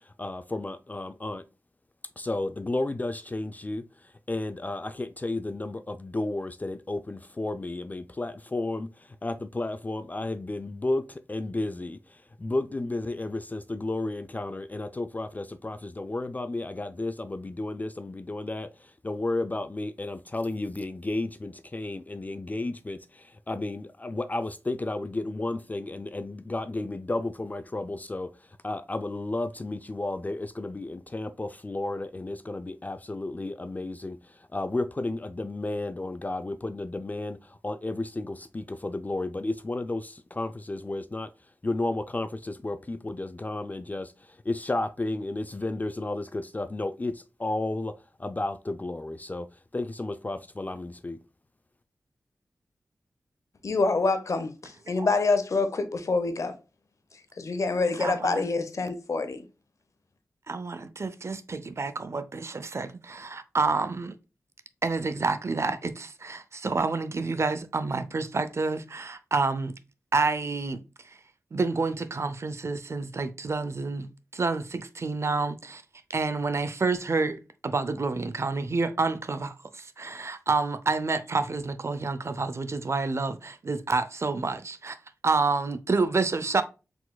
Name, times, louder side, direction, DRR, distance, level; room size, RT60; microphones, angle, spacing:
voice 1, 0.1-1.4 2.2-3.8 4.3-28.3 28.6-41.3 41.6-47.9 48.2-49.5 49.7-51.2, left 2 dB, 25° left, 0.4 m, -32 dB
voice 2, 53.6-56.6 57.4-59.4, left 3 dB, 60° left, 0.7 m, -26 dB
voice 3, 58.0-58.4 60.5-64.1 64.8-69.7 70.1-70.8 71.5-74.1 74.3-75.8 76.1-85.0 85.2-86.6, right 3 dB, 50° right, 0.6 m, -28 dB
4.6 x 3.9 x 2.2 m
cardioid pair, 50°, 6 cm